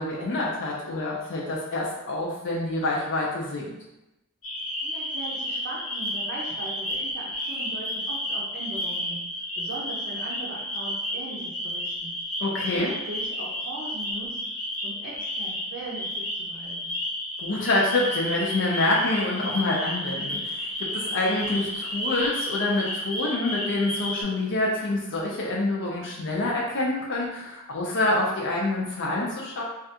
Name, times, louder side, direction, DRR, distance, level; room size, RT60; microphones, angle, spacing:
voice 1, 0.0-3.8 12.4-12.9 17.4-29.6, left 2 dB, 60° left, -4 dB, 0.5 m, -27 dB
sound 1, 4.4-24.2, left 1 dB, 85° left, 1.3 m, -32 dB
voice 2, 4.8-9.2 9.6-12.1 12.7-14.4 14.8-16.9, right 2 dB, 55° right, -6 dB, 0.5 m, -39 dB
3.2 x 2.4 x 2.8 m, 0.94 s
head